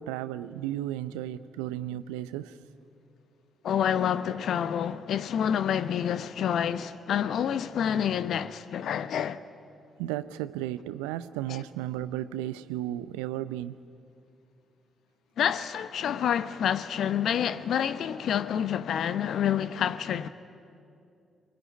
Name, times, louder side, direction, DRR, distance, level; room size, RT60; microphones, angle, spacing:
voice 1, 0.0-2.6 10.0-13.8, right 13 dB, 80° right, 0.6 m, -34 dB
voice 2, 3.6-9.4 11.5-11.6 15.4-20.3, left 9 dB, 60° left, 0.9 m, -28 dB
23.5 x 22.0 x 9.8 m
hypercardioid pair, 40°, 0 cm